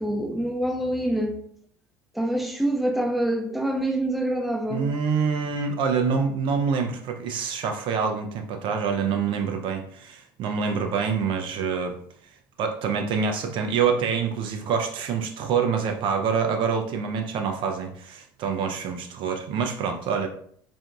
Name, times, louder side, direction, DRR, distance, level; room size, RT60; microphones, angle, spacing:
voice 1, 0.0-1.4 2.1-4.9, right 1 dB, ahead, 0.6 m, -26 dB
voice 2, 4.7-12.0 12.6-20.3, right 6 dB, 45° right, 0.4 m, -26 dB
4.4 x 2.6 x 2.3 m
figure-of-eight pair, 60°, 12 cm